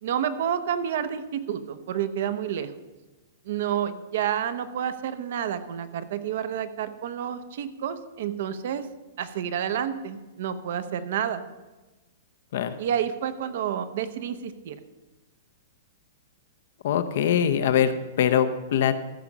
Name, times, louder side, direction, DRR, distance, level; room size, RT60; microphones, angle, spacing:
voice 1, 0.0-2.7 3.4-8.9 9.2-11.4 12.8-14.8, right 9 dB, 50° right, 11 dB, 0.8 m, -29 dB
voice 2, 16.8-19.0, left 8 dB, 55° left, 10 dB, 0.8 m, -23 dB
14.0 x 5.4 x 6.1 m, 1.1 s
supercardioid pair, 175°, 0 cm